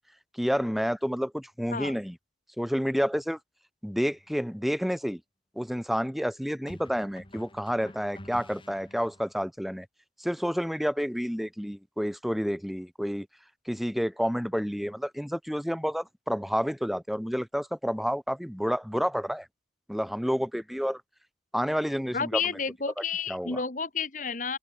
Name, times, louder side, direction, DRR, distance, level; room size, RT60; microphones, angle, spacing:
voice 1, 0.3-2.2 2.6-3.4 3.8-5.2 5.5-9.9 10.2-13.3 13.6-19.5 19.9-21.0 21.5-22.4 23.0-23.1 23.3-23.6, equal, ahead, 3.0 m, -29 dB
sound 1, 4.1-4.3 6.7-9.3, left 1 dB, 25° left, 5.7 m, -48 dB
voice 2, 22.1-24.6, left 5 dB, 45° left, 1.5 m, -31 dB
head